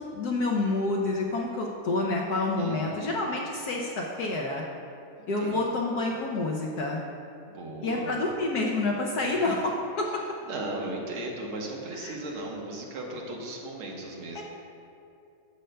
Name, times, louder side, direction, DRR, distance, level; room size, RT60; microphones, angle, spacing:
voice 1, 0.0-4.6 5.3-7.1 7.8-10.1 12.0-12.2 14.3-14.4, left 2 dB, 70° left, -1 dB, 0.9 m, -28 dB
voice 2, 2.6-3.1 5.1-5.6 7.5-8.2 9.2-9.5 10.5-14.4, right 2 dB, 85° right, -1 dB, 1.9 m, -37 dB
12.0 x 7.5 x 2.2 m, 2.6 s
omnidirectional pair, 2.2 m